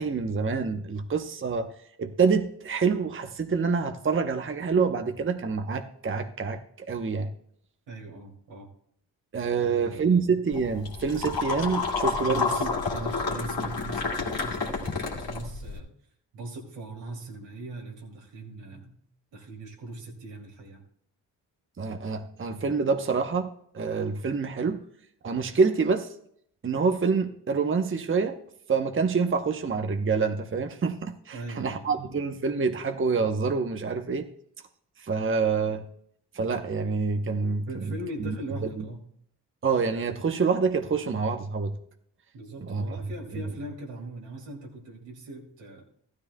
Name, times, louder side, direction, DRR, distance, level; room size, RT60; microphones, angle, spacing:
voice 1, 0.0-1.7 2.0-7.3 9.3-12.5 21.8-24.8 25.2-26.1 26.6-28.4 28.7-34.3 35.0-35.9 36.3-37.9 38.2-38.3 38.8-38.9 39.6-41.8 42.7-43.0, right 5 dB, 30° right, 7 dB, 0.8 m, -26 dB
voice 2, 7.9-8.7 9.6-10.3 12.2-15.9 16.3-19.0 19.3-20.8 31.3-32.1 37.7-39.0 42.3-45.8, right 2 dB, 80° right, -1 dB, 2.7 m, -40 dB
sound 1, 10.5-15.8, left 4 dB, 55° left, 2.3 m, -30 dB
15.0 x 12.5 x 2.2 m, 0.67 s
supercardioid pair, 45°, 43 cm